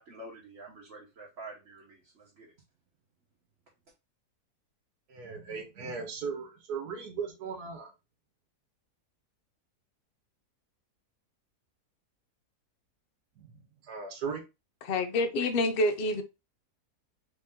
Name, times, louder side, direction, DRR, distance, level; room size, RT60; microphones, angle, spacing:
voice 1, 0.0-2.5, right 2 dB, 50° right, 1.5 m, -48 dB
voice 2, 5.1-7.9 13.4-14.4, right 5 dB, 75° right, 1.6 m, -38 dB
voice 3, 14.8-16.2, left 2 dB, 85° left, 0.5 m, -27 dB
4.2 x 2.8 x 3.6 m
omnidirectional pair, 1.7 m